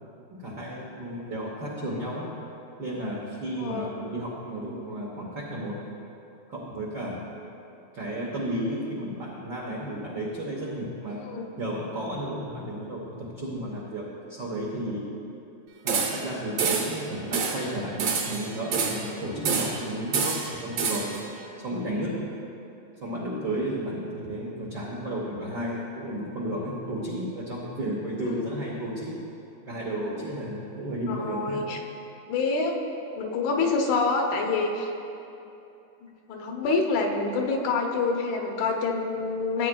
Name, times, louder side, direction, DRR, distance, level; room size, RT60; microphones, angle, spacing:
voice 1, 0.3-2.3 2.8-5.9 6.5-7.2 7.9-11.2 11.6-15.1 15.8-21.1 21.6-22.1 23.0-29.1 29.7-31.6, right 1 dB, 85° right, -4 dB, 0.9 m, -33 dB
voice 2, 3.6-4.1 11.2-11.5 28.2-28.6 31.1-31.8 32.3-32.8 33.2-34.9 36.0-39.7, left 4 dB, 80° left, 2 dB, 2.1 m, -27 dB
sound 1, 15.9-16.3 16.6-17.0 17.3-17.6 18.0-19.1 19.4-19.8 20.1-21.2, right 5 dB, 65° right, 1.5 m, -27 dB
15.0 x 8.5 x 2.2 m, 2.8 s
omnidirectional pair, 3.4 m